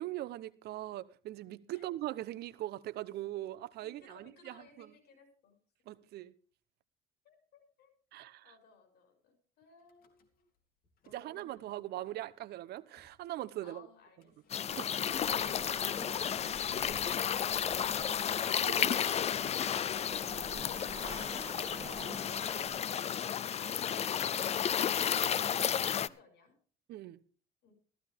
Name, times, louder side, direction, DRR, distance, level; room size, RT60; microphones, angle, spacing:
voice 1, 0.0-4.9 5.9-6.3 8.1-8.5 11.1-13.9 14.8-14.9 18.6-19.2 26.9-27.2, right 14 dB, 75° right, 0.9 m, -41 dB
voice 2, 3.8-5.6 5.8-5.9 7.2-7.9 8.2-10.4 11.0-11.6 11.9-12.0 13.6-14.4 23.1-26.5 27.6-27.7, left 5 dB, 75° left, 6.6 m, -61 dB
Car / Engine starting / Idling, 9.8-10.6 10.8-11.6 12.3-12.4 12.6-12.7 13.0-13.2 14.2-20.4, left 4 dB, 60° left, 3.1 m, -61 dB
sound 1, 14.5-26.1, left 9 dB, 40° left, 0.5 m, -32 dB
sound 2, 14.7-22.8, right 4 dB, 20° right, 3.3 m, -50 dB
15.0 x 14.5 x 3.5 m
cardioid pair, 110°, 17 cm